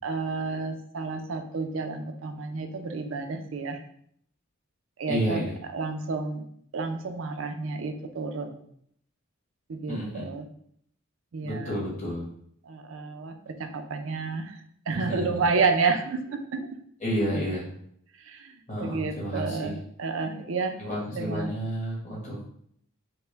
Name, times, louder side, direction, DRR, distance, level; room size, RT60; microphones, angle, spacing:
voice 1, 0.0-3.8 5.0-5.4 5.7-6.5 6.7-8.6 9.7-10.5 11.3-11.8 12.6-16.7 18.1-20.8 21.2-21.5, right 4 dB, 70° right, 6 dB, 0.4 m, -30 dB
voice 2, 5.1-5.5 9.9-10.3 11.4-12.3 14.9-15.4 17.0-17.7 18.7-19.7 20.8-22.4, equal, 35° left, -6 dB, 1.4 m, -30 dB
4.4 x 2.1 x 3.3 m, 0.67 s
head